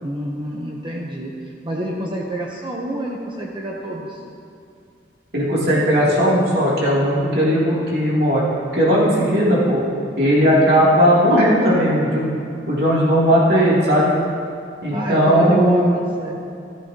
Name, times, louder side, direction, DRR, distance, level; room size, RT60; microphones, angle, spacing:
voice 1, 0.0-4.2 14.9-16.4, equal, 25° right, -2 dB, 0.9 m, -28 dB
voice 2, 5.3-8.4 8.7-9.8 10.2-12.3 12.7-14.2 14.8-15.9, equal, 60° right, -7 dB, 2.9 m, -17 dB
14.5 x 14.0 x 2.9 m, 2.4 s
head